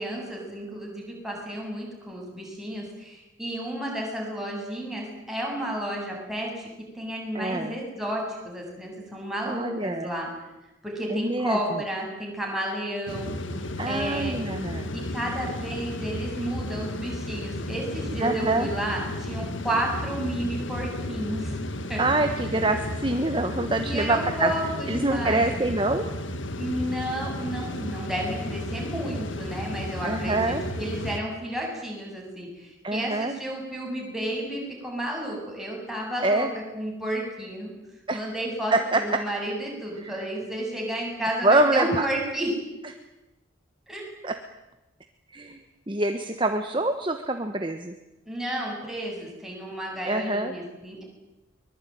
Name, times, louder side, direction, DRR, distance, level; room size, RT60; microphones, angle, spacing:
voice 1, 0.0-6.7 6.9-10.3 10.8-13.4 13.9-14.4 14.9-21.6 21.9-22.0 22.4-22.5 23.8-25.6 26.6-36.5 36.7-37.7 38.1-42.5 43.9-44.0 48.3-51.0, right 1 dB, ahead, -2 dB, 7.9 m, -32 dB
voice 2, 7.3-7.8 9.5-10.1 11.1-11.8 13.8-15.0 18.2-18.7 22.0-24.5 24.9-26.1 30.0-30.6 32.8-33.3 36.2-36.5 38.1-38.2 38.7-39.2 40.0-40.3 41.4-42.1 44.2-44.3 45.3-47.9 50.0-50.5, right 2 dB, 25° right, 6 dB, 1.3 m, -25 dB
sound 1, 13.1-31.2, left 1 dB, 70° left, 1.8 m, -33 dB
23.5 x 22.5 x 9.4 m, 0.97 s
head